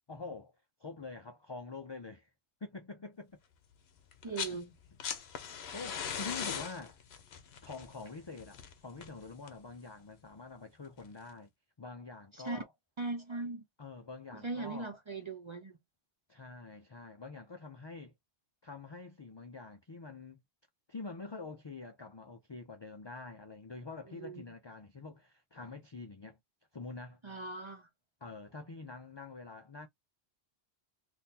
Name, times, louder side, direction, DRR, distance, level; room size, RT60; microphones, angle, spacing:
voice 1, 0.1-0.5 0.8-2.3 2.6-3.4 4.3-4.6 5.7-7.0 7.6-11.5 11.8-12.7 13.8-14.9 16.3-18.1 18.6-20.4 20.9-26.4 26.7-27.2 28.2-29.9, left 3 dB, 45° left, 0.3 m, -46 dB
sound 1, 4.1-4.6 4.8-9.7 11.0-11.1, left 7 dB, 75° left, 0.9 m, -40 dB
voice 2, 4.2-4.7 12.3-12.6 13.0-13.6 14.3-15.8 24.1-24.5 27.2-27.9, right 3 dB, 35° right, 0.5 m, -39 dB
3.8 x 2.6 x 2.7 m
omnidirectional pair, 1.1 m